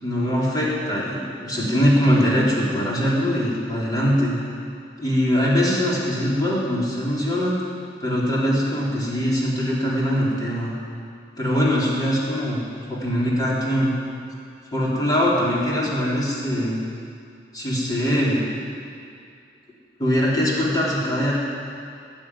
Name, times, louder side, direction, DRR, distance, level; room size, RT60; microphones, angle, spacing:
voice 1, 0.0-4.3 5.0-7.5 8.0-10.7 11.4-12.6 12.9-13.9 14.7-16.8 17.5-18.4 20.0-21.4, equal, 25° left, -6 dB, 4.0 m, -22 dB
20.0 x 7.5 x 9.6 m, 2.4 s
head